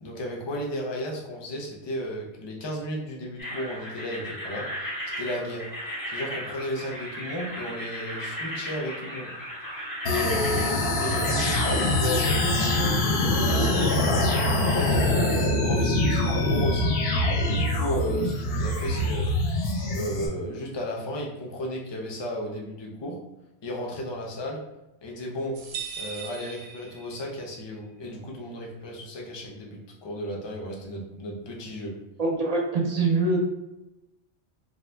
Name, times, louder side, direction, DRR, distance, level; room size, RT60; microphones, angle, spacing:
voice 1, 0.0-4.7 5.2-5.7 6.1-9.3 10.0-14.0 14.6-17.0 17.5-19.3 19.8-23.2 23.6-24.6 25.0-25.6 26.0-31.9, equal, 45° left, -1 dB, 0.3 m, -34 dB
sound 1, 3.4-15.4, equal, 20° left, 0.8 m, -36 dB
sound 2, 10.0-20.3, left 1 dB, 65° left, 0.7 m, -24 dB
sound 3, 25.6-27.5, right 6 dB, 85° right, 0.9 m, -38 dB
voice 2, 32.2-33.4, right 3 dB, 50° right, -1 dB, 0.5 m, -24 dB
2.5 x 2.1 x 3.3 m, 0.94 s
omnidirectional pair, 1.2 m